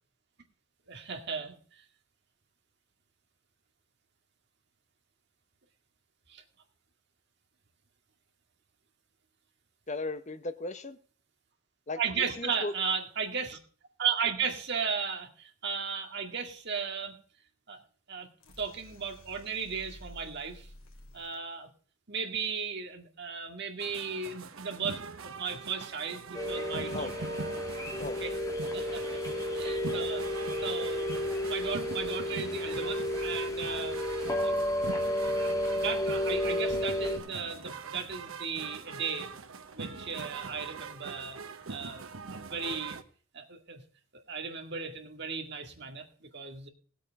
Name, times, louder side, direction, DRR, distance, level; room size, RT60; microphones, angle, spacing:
voice 1, 0.9-1.6 6.3-6.4 12.0-13.6 14.0-17.2 17.7-17.8 18.1-18.3 18.6-20.7 21.1-21.7 22.1-27.1 28.2-28.4 28.7-29.0 29.5-30.2 30.6-31.1 31.5-34.0 34.4-34.5 34.9-35.1 35.7-39.3 39.7-41.4 41.7-42.0 42.3-43.0 43.3-43.8 44.3-46.7, right 6 dB, 55° right, 2.2 m, -35 dB
voice 2, 9.9-11.0 11.9-12.0 12.4-12.7 26.9-27.2 28.0-28.2 28.8-28.9 29.3-29.4, left 2 dB, 35° left, 0.9 m, -36 dB
sound 1, 18.4-21.4, equal, 90° left, 2.9 m, -52 dB
sound 2, 23.8-43.0, right 4 dB, 85° right, 1.1 m, -43 dB
sound 3, 26.3-37.2, left 1 dB, 15° left, 1.8 m, -32 dB
19.0 x 8.3 x 3.6 m
head